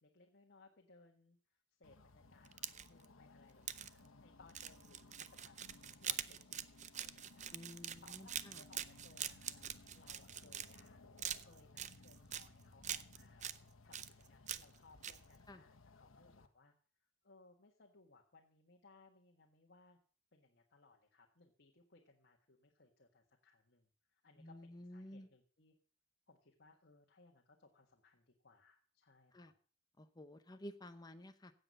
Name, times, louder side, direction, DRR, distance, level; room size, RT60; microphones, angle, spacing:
voice 1, 0.0-5.6 6.0-7.6 8.0-11.0 11.4-16.7 17.0-20.0 20.3-25.7 26.3-29.5, left 3 dB, 55° left, 1 dB, 1.5 m, -66 dB
sound 1, 1.8-16.5, left 2 dB, 90° left, 1.2 m, -62 dB
sound 2, 2.4-3.1 3.7-3.9 4.5-10.9 11.2-12.5 12.8-13.6 13.9-14.8 15.0-15.2, right 10 dB, 35° right, 0.6 m, -44 dB
voice 2, 7.5-8.6 15.5-15.6 24.4-25.3 29.3-29.5 30.0-31.5, left 1 dB, 20° left, 8 dB, 0.8 m, -52 dB
16.0 x 8.0 x 5.4 m, 0.42 s
head